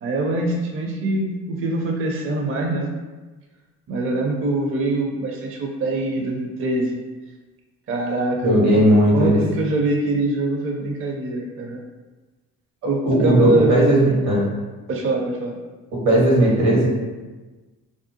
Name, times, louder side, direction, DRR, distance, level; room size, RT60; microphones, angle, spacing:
voice 1, 0.0-2.9 3.9-7.0 7.9-8.8 9.1-11.8 12.8-13.8 14.9-15.6, right 2 dB, 35° right, 1 dB, 0.5 m, -23 dB
voice 2, 8.4-9.4 13.0-14.4 15.9-16.9, right 1 dB, 80° right, -5 dB, 1.1 m, -16 dB
2.7 x 2.0 x 2.8 m, 1.2 s
hypercardioid pair, 50°, 39 cm